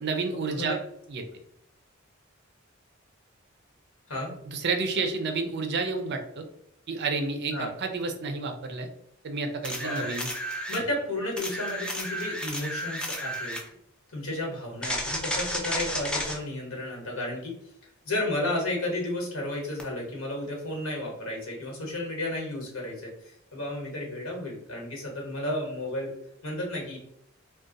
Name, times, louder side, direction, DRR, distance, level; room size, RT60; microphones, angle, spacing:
voice 1, 0.0-0.8 1.1-1.2 4.5-6.4 6.9-8.9 9.2-10.3, right 4 dB, 55° right, 5 dB, 0.5 m, -30 dB
voice 2, 9.6-10.1 10.7-13.6 14.1-17.5 18.0-26.1 26.4-27.0, left 1 dB, 80° left, -1 dB, 1.2 m, -32 dB
sound 1, 9.6-10.8 11.4-13.7 14.8-16.4 19.8-19.9, equal, 5° left, 0.4 m, -32 dB
2.5 x 2.2 x 3.8 m, 0.73 s
head